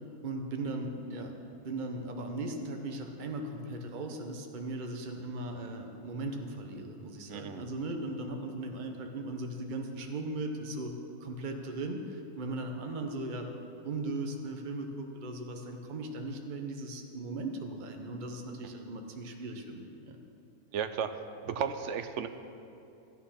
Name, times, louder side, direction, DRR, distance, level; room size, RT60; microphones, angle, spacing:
voice 1, 0.2-10.9 11.2-20.2, right 2 dB, 35° right, 3 dB, 1.0 m, -38 dB
voice 2, 7.3-7.6 20.7-22.3, right 7 dB, 60° right, 9 dB, 0.9 m, -34 dB
13.5 x 9.5 x 5.8 m, 2.8 s
omnidirectional pair, 1.6 m